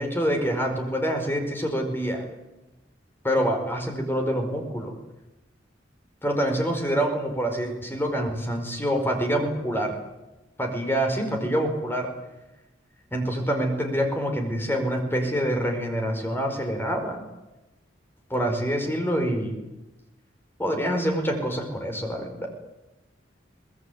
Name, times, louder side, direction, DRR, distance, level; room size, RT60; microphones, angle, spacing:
voice 1, 0.0-2.2 3.2-4.9 6.2-10.0 10.6-12.1 13.1-17.2 18.3-19.5 20.6-22.5, equal, 10° left, 3 dB, 4.9 m, -26 dB
23.5 x 20.5 x 9.5 m, 1.0 s
head